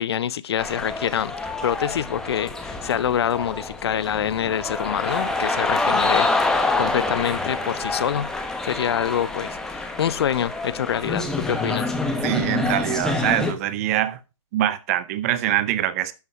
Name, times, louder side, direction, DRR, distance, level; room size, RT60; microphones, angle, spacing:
voice 1, 0.0-6.5 6.8-11.9, left 9 dB, 50° left, 0.5 m, -26 dB
sound 1, 0.6-13.5, left 2 dB, 5° left, 1.1 m, -26 dB
voice 2, 12.2-14.2 14.5-16.1, right 13 dB, 25° right, 0.6 m, -23 dB
11.5 x 5.5 x 4.6 m
hypercardioid pair, 145°, 17 cm